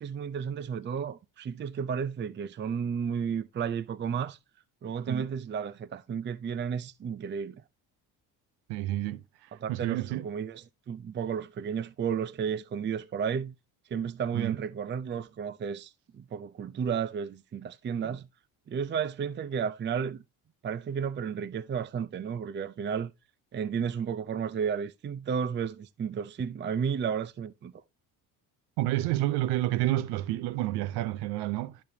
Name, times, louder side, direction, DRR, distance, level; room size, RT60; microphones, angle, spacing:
voice 1, 0.0-4.4 4.8-7.6 9.5-13.5 13.9-18.3 18.7-20.2 20.6-23.1 23.5-27.7, right 7 dB, 30° right, 0.5 m, -33 dB
voice 2, 8.7-10.3 14.3-14.6 28.8-31.8, right 15 dB, 90° right, 0.7 m, -30 dB
12.5 x 5.2 x 2.7 m
cardioid pair, 100°, 38 cm